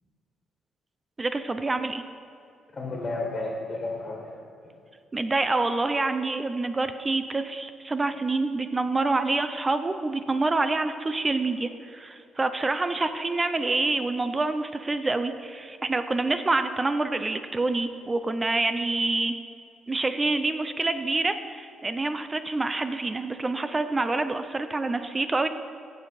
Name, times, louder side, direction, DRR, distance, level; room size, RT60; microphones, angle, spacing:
voice 1, 1.2-2.0 5.1-19.4 19.9-25.5, right 3 dB, 25° right, 9 dB, 0.5 m, -27 dB
voice 2, 2.7-4.7, left 2 dB, 35° left, 0 dB, 1.7 m, -33 dB
15.5 x 5.2 x 4.2 m, 2.5 s
cardioid pair, 90°, 0 cm